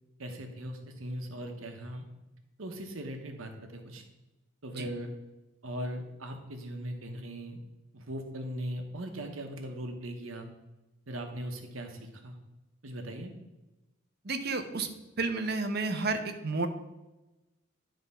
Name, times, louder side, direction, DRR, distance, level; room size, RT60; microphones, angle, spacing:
voice 1, 0.2-2.0 2.6-4.0 4.6-5.1 5.6-7.6 7.9-10.5 11.1-12.4 12.8-13.3, right 1 dB, 85° right, 4 dB, 1.1 m, -39 dB
voice 2, 14.2-14.9 15.2-16.7, right 3 dB, 50° right, 7 dB, 0.8 m, -31 dB
10.5 x 3.6 x 5.5 m, 1.0 s
head